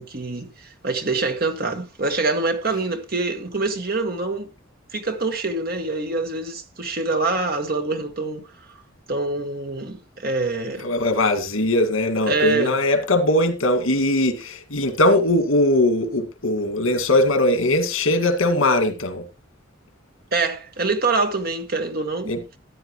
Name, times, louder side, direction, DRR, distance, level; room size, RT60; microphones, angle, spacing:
voice 1, 0.0-4.5 4.9-8.5 9.1-10.9 12.3-12.8 20.3-22.3, right 3 dB, 50° right, 1.6 m, -25 dB
voice 2, 10.8-19.2 22.3-22.4, left 1 dB, 80° left, 2.0 m, -20 dB
13.5 x 9.5 x 3.1 m
head